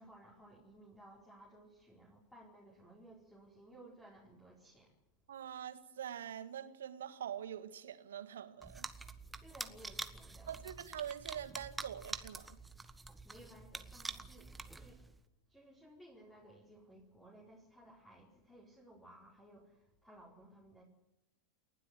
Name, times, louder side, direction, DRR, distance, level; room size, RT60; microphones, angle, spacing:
voice 1, 0.0-4.9 9.4-10.6 13.2-15.0 15.5-20.8, right 1 dB, 5° left, -2 dB, 4.6 m, -58 dB
voice 2, 5.3-8.9 10.5-12.6, right 9 dB, 65° right, 11 dB, 1.8 m, -44 dB
sound 1, 8.6-15.2, right 3 dB, 10° right, 1.4 m, -47 dB
29.5 x 12.5 x 9.4 m, 0.92 s
figure-of-eight pair, 90°, 0 cm